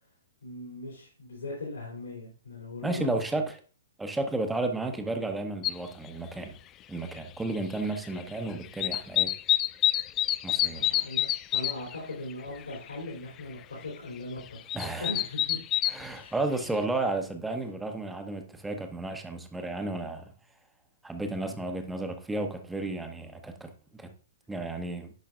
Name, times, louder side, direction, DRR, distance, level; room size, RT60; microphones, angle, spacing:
voice 1, 0.4-3.4 10.7-14.7 15.0-15.6 16.1-16.3 21.4-21.6, left 2 dB, 75° left, 2.9 m, -39 dB
voice 2, 2.8-3.6 4.0-6.6 6.9-9.3 10.4-10.9 14.7-15.1 15.9-20.3 21.0-24.1 24.5-25.1, right 2 dB, 5° right, 0.9 m, -33 dB
sound 1, 5.6-5.7 7.2-7.3 7.5-8.4 8.6-12.0 12.3-12.4 12.6-13.0 13.4-13.5 14.4-16.1 16.7-16.8, left 13 dB, 25° left, 0.3 m, -27 dB
10.5 x 5.6 x 2.5 m
figure-of-eight pair, 115°, 0 cm